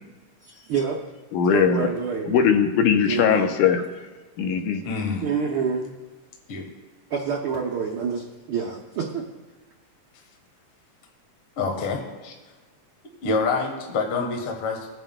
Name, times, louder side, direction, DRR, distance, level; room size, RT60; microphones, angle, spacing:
voice 1, 0.4-1.0 1.5-2.4 3.0-3.5 5.2-5.9 7.1-9.3, right 6 dB, 80° right, -1 dB, 1.1 m, -27 dB
voice 2, 1.3-1.9 2.2-3.8 4.4-4.8, left 7 dB, 85° left, 6 dB, 2.2 m, -20 dB
voice 3, 4.8-5.3 6.5-6.7 11.6-12.3 13.2-14.9, left 4 dB, 55° left, 1 dB, 2.0 m, -26 dB
23.0 x 8.9 x 2.2 m, 1.3 s
omnidirectional pair, 3.5 m